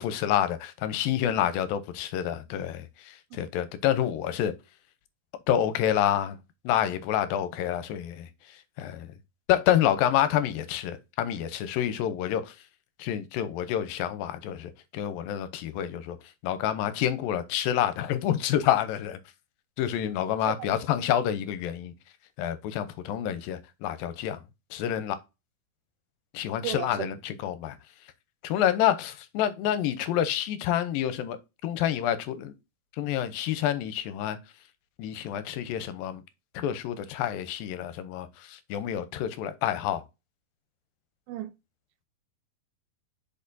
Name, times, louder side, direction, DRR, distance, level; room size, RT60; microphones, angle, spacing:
voice 1, 0.0-4.5 5.5-9.1 9.5-12.6 13.0-16.2 16.4-19.2 19.8-21.9 22.4-24.4 24.7-25.2 26.3-27.8 28.4-31.4 31.6-32.5 33.0-34.4 35.0-36.2 36.5-40.0, left 11 dB, 85° left, 2.5 m, -28 dB
voice 2, 26.6-27.1 41.3-41.5, right 15 dB, 90° right, 2.6 m, -34 dB
6.6 x 5.4 x 2.6 m
omnidirectional pair, 4.1 m